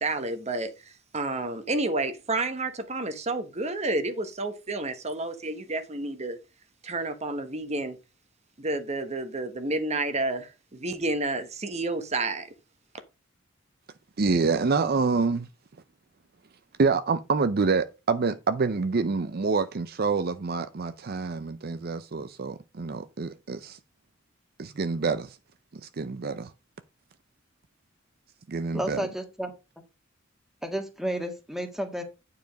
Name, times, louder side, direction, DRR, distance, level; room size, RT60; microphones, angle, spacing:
voice 1, 0.0-6.4 6.8-8.0 8.6-12.5, right 2 dB, 35° right, 1.1 m, -30 dB
voice 2, 14.2-15.5 16.8-23.8 24.6-25.4 26.0-26.5 28.5-29.0, right 4 dB, 50° right, 0.6 m, -27 dB
voice 3, 28.7-29.5 30.6-32.0, right 1 dB, ahead, 1.6 m, -31 dB
9.3 x 4.9 x 5.1 m
head